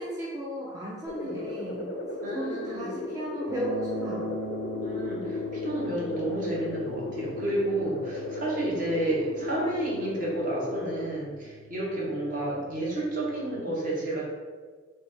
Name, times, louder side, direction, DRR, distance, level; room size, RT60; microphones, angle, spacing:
voice 1, 0.0-1.9 2.3-4.3, right 1 dB, 15° right, -6 dB, 0.4 m, -35 dB
sound 1, 1.1-11.1, left 2 dB, 60° left, 0.4 m, -35 dB
voice 2, 2.2-2.9 4.8-14.2, right 1 dB, 45° right, -5 dB, 1.0 m, -31 dB
sound 2, 3.5-13.6, left 3 dB, 75° right, 0.9 m, -41 dB
3.2 x 2.2 x 4.2 m, 1.5 s
head